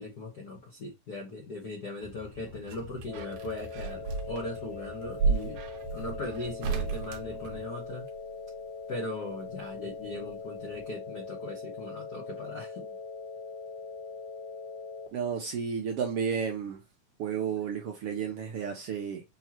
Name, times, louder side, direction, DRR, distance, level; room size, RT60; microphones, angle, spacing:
voice 1, 0.0-5.6 5.9-8.1 8.9-12.9, left 2 dB, 60° left, 1.0 m, -39 dB
sound 1, 2.0-7.7, left 5 dB, 45° right, 1.0 m, -51 dB
sound 2, 2.1-8.2 9.6-10.4 10.7-10.8, right 5 dB, 85° right, 2.3 m, -34 dB
sound 3, 3.1-15.1, left 5 dB, 90° left, 3.1 m, -41 dB
voice 2, 15.1-16.8 17.2-19.2, right 7 dB, 70° right, 1.5 m, -32 dB
6.2 x 2.9 x 2.8 m
omnidirectional pair, 3.4 m